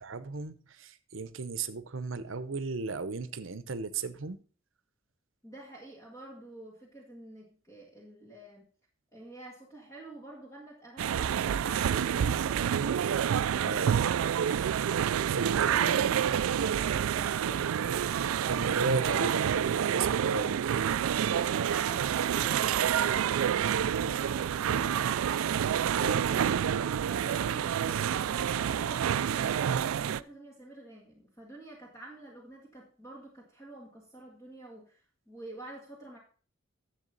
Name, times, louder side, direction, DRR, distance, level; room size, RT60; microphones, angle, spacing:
voice 1, 0.0-4.4 13.6-14.0 15.3-16.1 18.5-20.6 26.0-26.3, right 4 dB, 70° right, 0.8 m, -35 dB
voice 2, 5.4-8.7 9.1-13.3 27.1-36.2, right 2 dB, 15° left, 1.9 m, -48 dB
sound 1, 11.0-30.2, right 9 dB, 90° right, 0.3 m, -28 dB
10.5 x 7.3 x 4.0 m
head